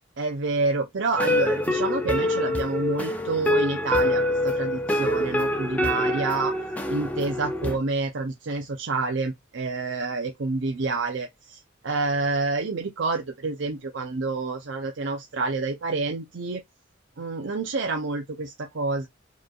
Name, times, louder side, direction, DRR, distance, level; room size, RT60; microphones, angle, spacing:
voice 1, 0.2-6.6 6.9-16.6 17.2-19.1, right 3 dB, 70° right, 0.6 m, -28 dB
sound 1, 1.2-7.8, left 1 dB, 10° left, 0.6 m, -25 dB
4.9 x 3.1 x 2.3 m
head